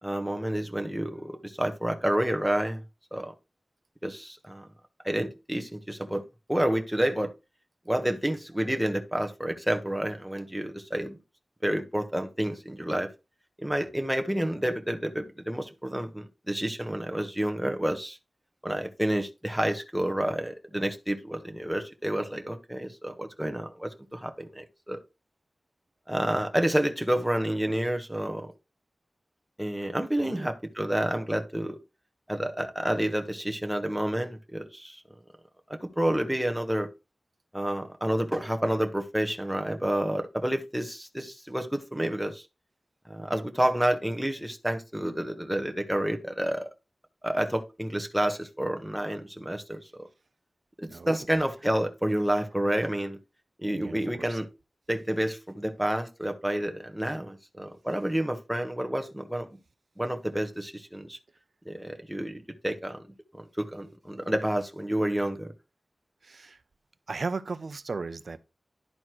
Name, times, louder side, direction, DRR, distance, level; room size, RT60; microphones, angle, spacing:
voice 1, 0.0-2.8 3.1-3.3 4.0-4.7 5.0-6.2 6.5-7.3 7.9-11.2 11.6-13.1 13.6-18.2 18.6-25.0 26.1-28.5 29.6-31.8 32.3-35.0 35.7-36.9 37.5-42.4 43.1-46.7 47.2-49.8 50.8-53.2 53.6-54.5 54.9-59.5 60.0-61.2 61.6-63.0 63.4-65.5, right 1 dB, 5° right, 1.6 m, -29 dB
voice 2, 30.2-30.5 50.9-51.3 53.8-54.4 66.2-66.6 67.1-68.4, right 4 dB, 75° right, 0.7 m, -36 dB
11.0 x 4.3 x 4.6 m
wide cardioid pair, 60°, 0 cm